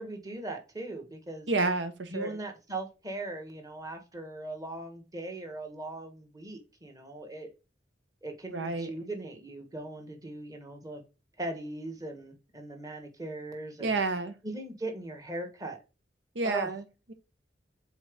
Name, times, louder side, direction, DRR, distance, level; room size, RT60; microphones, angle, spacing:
voice 1, 0.0-1.5 2.1-7.5 8.2-11.0 11.4-14.0 14.4-15.8 16.4-16.7, right 2 dB, 20° right, 1.3 m, -39 dB
voice 2, 1.5-2.4 8.5-8.9 13.8-14.4 16.3-16.8, right 3 dB, 85° right, 0.8 m, -29 dB
7.4 x 3.9 x 3.5 m
head